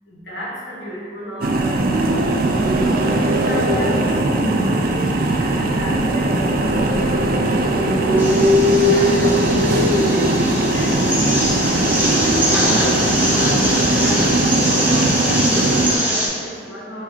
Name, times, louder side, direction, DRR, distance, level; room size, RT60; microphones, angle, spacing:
voice 1, 0.0-9.4 9.7-12.6 13.3-17.0, equal, 75° left, -6 dB, 1.2 m, -34 dB
sound 1, 1.4-16.0, right 1 dB, 55° right, 0.4 m, -18 dB
sound 2, 8.2-16.3, equal, 10° right, 0.7 m, -23 dB
3.7 x 3.1 x 4.4 m, 2.3 s
head